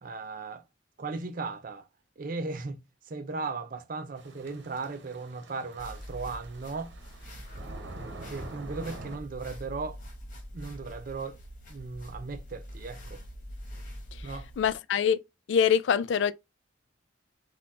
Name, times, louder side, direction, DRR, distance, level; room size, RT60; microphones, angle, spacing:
voice 1, 0.0-0.6 1.0-1.9 2.2-2.8 3.1-6.9 8.3-10.0 10.5-11.4 11.7-13.2 14.2-14.5, right 4 dB, 45° right, 0.5 m, -37 dB
sound 1, 4.2-9.2, right 2 dB, 60° right, 1.0 m, -46 dB
sound 2, 5.8-14.7, equal, 45° left, 1.4 m, -44 dB
voice 2, 14.6-15.2 15.5-16.3, left 7 dB, 70° left, 0.3 m, -24 dB
4.2 x 2.4 x 4.1 m
head